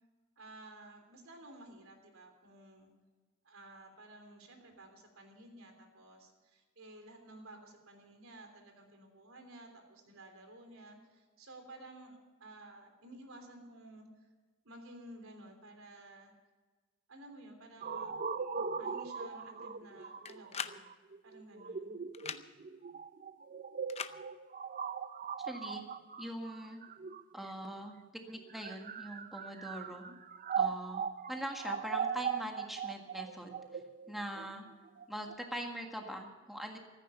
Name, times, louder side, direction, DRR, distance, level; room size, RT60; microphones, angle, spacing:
voice 1, 0.4-2.9 3.4-14.3 14.6-16.3 17.1-18.2 18.8-20.8 21.2-22.0, right 1 dB, 80° right, 5 dB, 3.3 m, -54 dB
sound 1, 17.8-27.7 28.4-35.4, right 6 dB, 40° right, 0.6 m, -39 dB
sound 2, 20.2-20.8 22.1-22.4 23.9-24.2, left 6 dB, 30° left, 0.6 m, -40 dB
voice 2, 25.4-25.8 26.2-26.8 27.3-28.0 28.3-30.0 30.5-33.8 34.1-34.6 35.1-36.8, equal, ahead, 2 dB, 1.7 m, -42 dB
15.0 x 14.0 x 5.6 m, 1.4 s
head